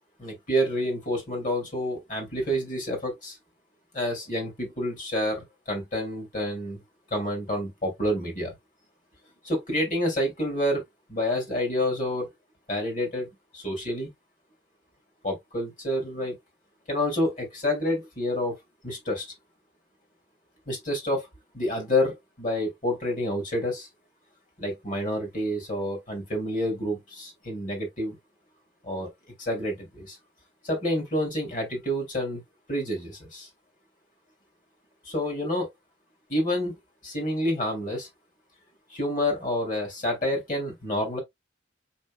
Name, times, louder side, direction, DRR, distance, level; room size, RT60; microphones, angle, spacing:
voice 1, 0.2-3.4 3.9-6.8 7.1-8.5 9.4-10.8 11.1-12.3 12.7-13.3 13.5-14.1 15.2-16.4 16.9-18.5 18.8-19.3 20.7-21.3 21.5-23.9 24.6-28.2 28.8-29.1 29.4-30.2 30.6-32.4 32.7-33.5 35.0-35.7 36.3-36.8 37.0-38.1 38.9-41.2, left 1 dB, 40° left, 2.6 m, -28 dB
4.7 x 4.3 x 2.2 m
head